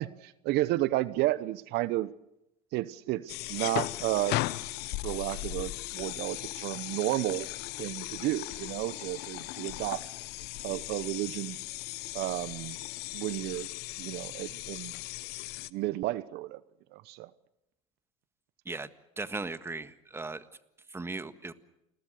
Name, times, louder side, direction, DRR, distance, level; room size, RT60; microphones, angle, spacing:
voice 1, 0.0-2.1 2.7-4.4 5.0-7.5 7.8-10.0 10.6-11.6 12.1-12.8 13.1-13.7 14.0-14.9 15.7-16.6 16.9-17.3, right 17 dB, 60° right, 17 dB, 0.9 m, -32 dB
sound 1, 3.3-15.7, left 18 dB, 60° left, 1.0 m, -37 dB
voice 2, 19.2-20.5 20.9-21.5, right 3 dB, 15° right, 12 dB, 1.6 m, -37 dB
29.0 x 21.0 x 6.6 m, 0.87 s
hypercardioid pair, 90°, 19 cm